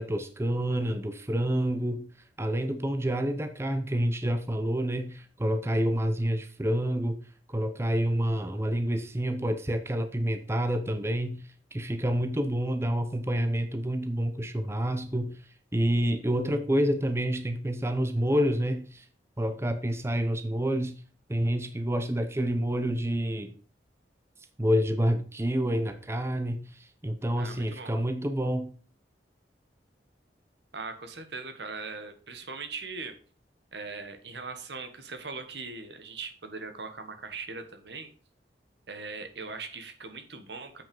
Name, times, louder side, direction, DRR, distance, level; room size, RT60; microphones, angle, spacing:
voice 1, 0.0-2.1 2.4-7.2 7.5-11.4 11.7-15.4 15.7-19.1 19.4-21.0 21.3-23.5 24.6-28.7, equal, 15° right, 8 dB, 0.7 m, -28 dB
voice 2, 27.4-27.9 30.7-33.2 33.7-38.1 38.9-40.8, right 4 dB, 75° right, 8 dB, 1.4 m, -40 dB
7.6 x 6.0 x 5.3 m, 0.39 s
head